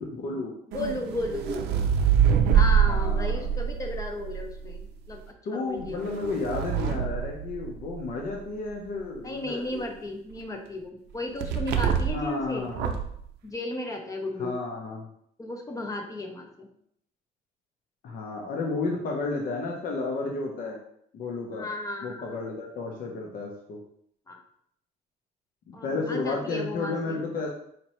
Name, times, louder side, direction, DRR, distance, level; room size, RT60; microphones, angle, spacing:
voice 1, 0.1-0.5 2.9-3.5 5.5-9.8 12.1-12.9 14.4-15.1 18.0-20.8 21.1-21.7 22.0-23.8 25.7-27.5, left 3 dB, 55° left, 0 dB, 0.7 m, -32 dB
voice 2, 0.7-1.8 2.5-6.1 9.2-12.7 13.4-14.5 15.4-16.7 21.5-22.4 24.3-24.4 25.7-27.2, left 2 dB, 20° left, 3 dB, 0.7 m, -34 dB
sound 1, 0.7-4.8 5.8-8.1 11.4-12.3 12.7-13.2, right 8 dB, 80° right, 0.5 m, -25 dB
4.3 x 2.7 x 3.1 m, 0.69 s
cardioid pair, 110°, 17 cm